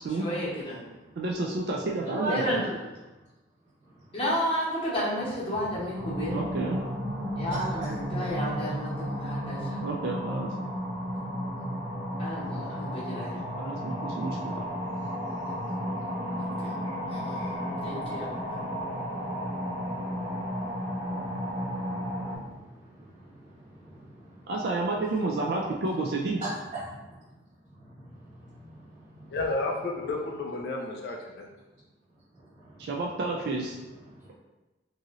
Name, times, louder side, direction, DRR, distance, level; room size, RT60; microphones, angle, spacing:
voice 1, 0.1-0.8 2.3-2.7 4.1-6.4 7.4-9.9 12.2-13.4 16.3-16.7 17.1-17.3 17.8-18.3, equal, 30° left, -7 dB, 0.8 m, -32 dB
voice 2, 1.2-2.6 6.3-6.8 9.8-10.5 13.6-14.7 24.5-26.4 32.8-33.7, right 2 dB, 55° right, -2 dB, 0.3 m, -30 dB
voice 3, 2.0-2.7 3.8-4.2 6.1-7.9 10.6-11.2 11.7-24.5 26.4-29.4 32.3-33.1 33.8-34.3, right 2 dB, 40° right, -14 dB, 0.9 m, -45 dB
sound 1, 5.9-22.4, equal, 80° right, 1.1 m, -33 dB
voice 4, 29.3-31.5, left 2 dB, 55° left, 1 dB, 0.3 m, -31 dB
3.0 x 2.7 x 2.4 m, 1.1 s
head